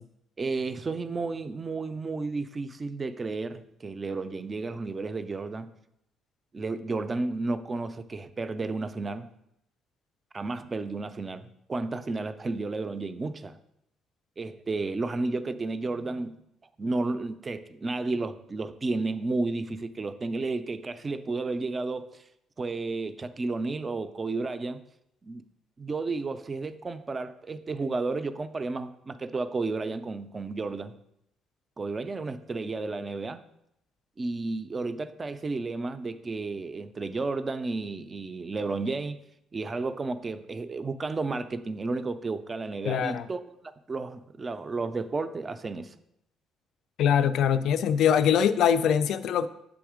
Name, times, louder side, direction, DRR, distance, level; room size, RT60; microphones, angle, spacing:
voice 1, 0.4-5.7 6.5-9.3 10.3-13.6 14.4-16.4 16.8-22.2 22.6-24.8 25.2-25.4 25.8-30.9 31.8-33.4 34.2-39.2 39.5-45.9, right 3 dB, 20° right, 0.3 m, -32 dB
voice 2, 42.9-43.3 47.0-49.5, left 8 dB, 60° left, 0.3 m, -23 dB
7.8 x 3.6 x 4.9 m
cardioid pair, 165°, 0 cm